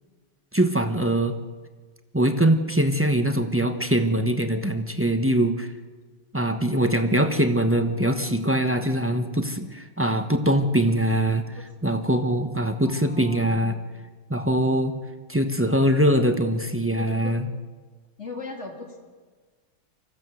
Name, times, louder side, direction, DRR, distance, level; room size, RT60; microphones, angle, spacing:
voice 1, 0.5-1.4 2.1-5.7 6.3-11.5 11.8-13.8 14.3-14.9 15.3-17.5, right 1 dB, 10° right, 7 dB, 0.5 m, -22 dB
voice 2, 12.8-13.7 17.0-17.3 18.2-19.0, left 3 dB, 30° left, 1 dB, 3.4 m, -38 dB
24.5 x 15.5 x 7.8 m, 1.4 s
omnidirectional pair, 2.3 m